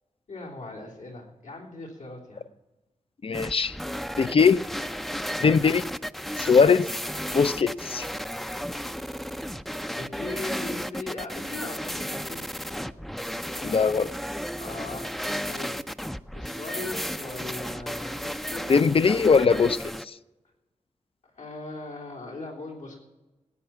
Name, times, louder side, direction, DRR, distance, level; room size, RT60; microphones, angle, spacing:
voice 1, 0.3-2.4 10.0-12.8 14.6-15.8 16.3-19.1 21.4-23.0, left 2 dB, 85° left, -2 dB, 3.6 m, -39 dB
voice 2, 3.2-3.8 4.2-4.6 5.4-5.8 6.4-6.9 7.3-8.1 13.6-14.1 18.7-19.8 20.1-20.2, left 5 dB, 50° left, 13 dB, 0.6 m, -20 dB
sound 1, 3.3-20.1, equal, ahead, 0.5 m, -34 dB
18.0 x 8.9 x 5.8 m, 1.1 s
cardioid pair, 75°, 12 cm